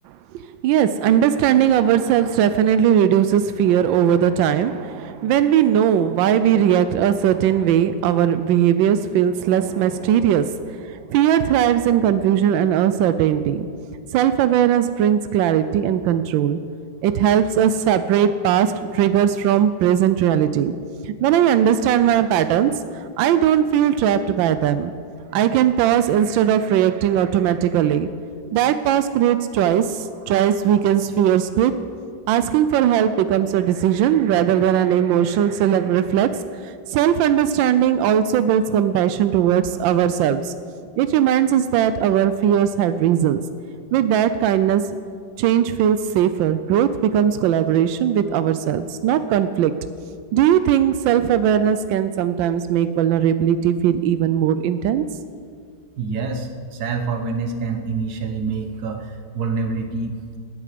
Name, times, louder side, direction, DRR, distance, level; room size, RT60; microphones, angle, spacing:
voice 1, 0.1-13.7 14.1-16.6 17.0-20.7 21.0-24.9 25.3-28.1 28.5-31.7 32.3-40.5 41.0-43.4 43.9-44.8 45.4-49.7 50.3-55.0, right 9 dB, 90° right, 12 dB, 1.3 m, -19 dB
voice 2, 56.0-60.4, right 4 dB, 60° right, 6 dB, 1.6 m, -26 dB
18.5 x 9.7 x 5.1 m, 2.1 s
omnidirectional pair, 2.0 m